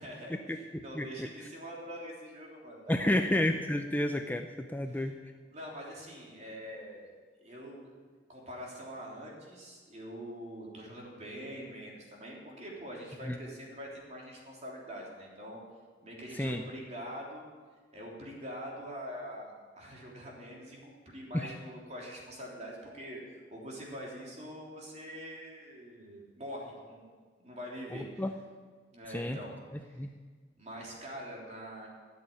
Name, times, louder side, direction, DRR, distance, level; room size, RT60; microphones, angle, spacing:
voice 1, 0.0-3.2 4.9-5.1 5.5-7.1 7.4-7.9 8.3-15.6 16.0-17.4 17.9-27.1 27.4-28.2 28.9-29.5 29.8-30.1 30.6-31.9, equal, 40° right, -2 dB, 3.4 m, -44 dB
voice 2, 0.7-1.3 2.9-5.2 13.2-13.4 16.3-16.7 21.3-21.5 27.9-28.3 29.1-29.4 30.0-30.2, left 1 dB, 10° left, 5 dB, 0.5 m, -31 dB
13.0 x 7.8 x 8.5 m, 1.5 s
head